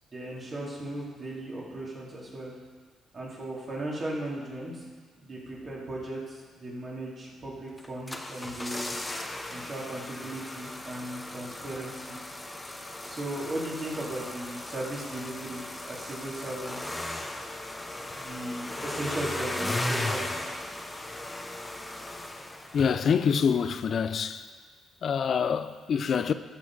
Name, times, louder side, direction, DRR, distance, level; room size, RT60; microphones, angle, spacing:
voice 1, 0.1-2.5 3.1-4.8 5.2-8.9 9.5-12.2 13.1-17.1 18.1-20.3, right 1 dB, 40° right, 3.1 m, -37 dB
sound 1, 7.8-23.3 23.6-23.7, left 1 dB, 15° left, 0.9 m, -37 dB
voice 2, 22.7-24.5 25.0-26.3, left 6 dB, 55° left, 0.5 m, -26 dB
14.0 x 6.0 x 4.8 m
cardioid pair, 85°, 0 cm